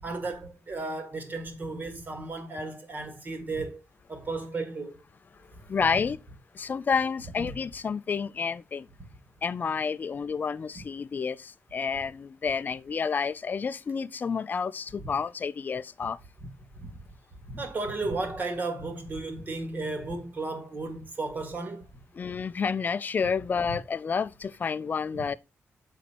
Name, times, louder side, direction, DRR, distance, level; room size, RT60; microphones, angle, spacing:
voice 1, 0.0-3.8 4.1-5.0 16.4-16.5 16.8-17.0 17.4-21.9 25.1-25.2, right 3 dB, 40° right, 1.7 m, -34 dB
voice 2, 5.7-6.2 6.5-8.9 9.4-16.2 22.1-25.3, left 5 dB, 40° left, 0.4 m, -30 dB
7.8 x 4.1 x 4.3 m
wide cardioid pair, 150°, 5 cm